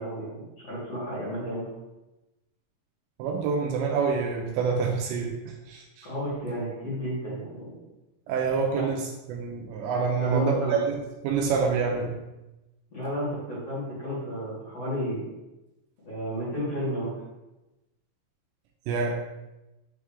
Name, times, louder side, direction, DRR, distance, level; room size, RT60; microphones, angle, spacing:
voice 1, 0.0-1.7 6.0-7.7 8.7-8.8 10.2-10.8 12.9-15.2 16.0-17.1, equal, 45° left, -10 dB, 2.4 m, -32 dB
voice 2, 3.2-5.3 5.7-6.1 8.3-11.0 11.2-12.1 18.9-19.2, right 5 dB, 85° right, 1 dB, 2.8 m, -27 dB
9.3 x 3.4 x 3.3 m, 1.0 s
omnidirectional pair, 5.4 m